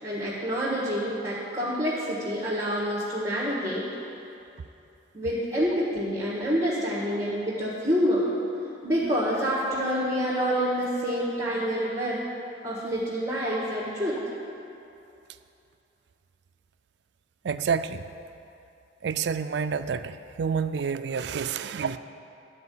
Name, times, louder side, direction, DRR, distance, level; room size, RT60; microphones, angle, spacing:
voice 1, 0.0-3.9 5.1-8.3 8.8-12.3 12.6-14.2, equal, 15° right, -8 dB, 1.4 m, -27 dB
voice 2, 17.4-18.1 19.0-22.0, right 6 dB, 65° right, 11 dB, 0.4 m, -28 dB
12.0 x 4.6 x 8.4 m, 2.8 s
head